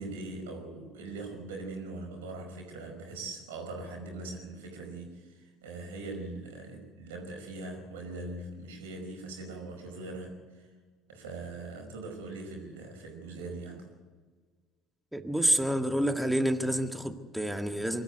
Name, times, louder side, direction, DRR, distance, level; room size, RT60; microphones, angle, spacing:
voice 1, 0.0-10.7 11.1-13.9, right 2 dB, 75° right, 3 dB, 5.2 m, -41 dB
voice 2, 15.1-18.0, right 1 dB, 5° right, 7 dB, 1.8 m, -28 dB
23.5 x 13.0 x 9.1 m, 1.5 s
hypercardioid pair, 65°, 0 cm